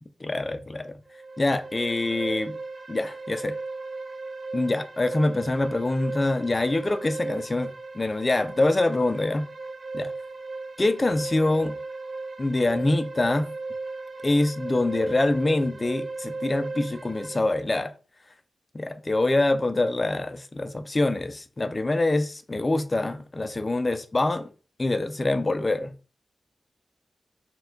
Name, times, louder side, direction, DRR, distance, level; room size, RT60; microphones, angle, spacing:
voice 1, 0.2-1.0 1.4-2.5 2.9-3.5 4.5-9.4 9.9-10.1 10.8-11.7 12.4-13.5 14.2-17.9 18.7-24.5 24.8-25.9, left 2 dB, 25° left, 0.4 m, -25 dB
sound 1, 1.1-17.4, right 3 dB, 40° right, 0.6 m, -36 dB
4.4 x 2.2 x 3.7 m
wide cardioid pair, 155°, 0 cm